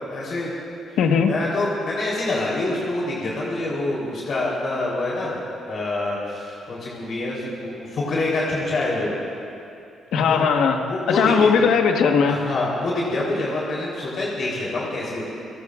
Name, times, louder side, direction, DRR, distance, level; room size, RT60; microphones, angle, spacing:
voice 1, 0.1-0.5 1.3-5.4 5.7-9.1 10.3-10.5 10.8-11.6 12.2-15.2, left 2 dB, 55° left, -5 dB, 3.7 m, -26 dB
voice 2, 1.0-1.3 10.1-12.4, left 6 dB, 80° left, 4 dB, 1.4 m, -18 dB
29.5 x 18.0 x 2.5 m, 2.7 s
cardioid pair, 90°, 0 cm